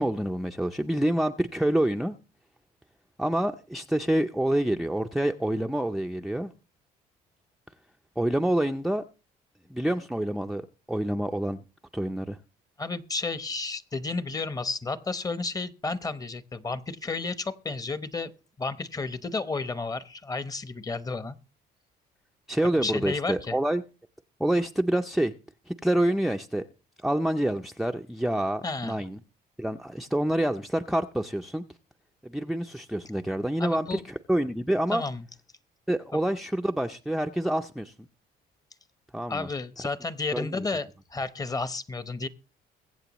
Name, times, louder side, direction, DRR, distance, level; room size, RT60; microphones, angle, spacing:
voice 1, 0.0-2.2 3.2-6.5 8.2-9.0 9.7-11.6 11.9-12.4 22.5-23.8 24.4-25.3 25.7-26.7 27.0-29.2 29.6-31.6 32.2-35.0 35.9-38.1 39.1-39.5 39.8-39.9 40.3-40.7, right 1 dB, ahead, 0.5 m, -27 dB
voice 2, 12.8-18.3 18.6-21.4 22.8-23.5 28.6-29.0 33.6-34.0 34.9-35.2 39.3-42.3, left 3 dB, 20° left, 0.9 m, -32 dB
22.0 x 7.9 x 3.0 m
cardioid pair, 110°, 17 cm